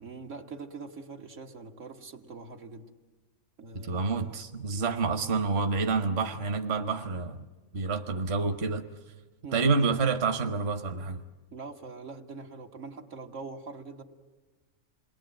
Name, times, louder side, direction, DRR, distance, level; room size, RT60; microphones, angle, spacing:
voice 1, 0.0-2.9 3.6-4.4 4.7-5.1 9.4-9.7 11.5-14.0, right 4 dB, 90° right, 2 dB, 2.0 m, -43 dB
voice 2, 3.7-7.4 7.7-8.9 9.5-11.2, right 4 dB, 60° right, 9 dB, 1.3 m, -28 dB
27.5 x 21.0 x 8.9 m, 1.2 s
omnidirectional pair, 1.2 m